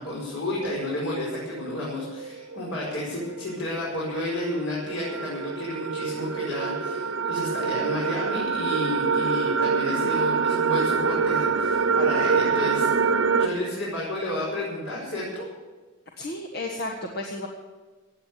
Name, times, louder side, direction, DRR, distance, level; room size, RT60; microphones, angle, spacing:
voice 1, 0.0-13.1 13.4-15.5, left 1 dB, 85° left, -6 dB, 5.4 m, -31 dB
sound 1, 0.6-13.5, right 5 dB, 80° right, 1.1 m, -26 dB
voice 2, 16.2-17.5, left 2 dB, 50° left, 1 dB, 1.6 m, -32 dB
16.0 x 9.3 x 9.5 m, 1.3 s
head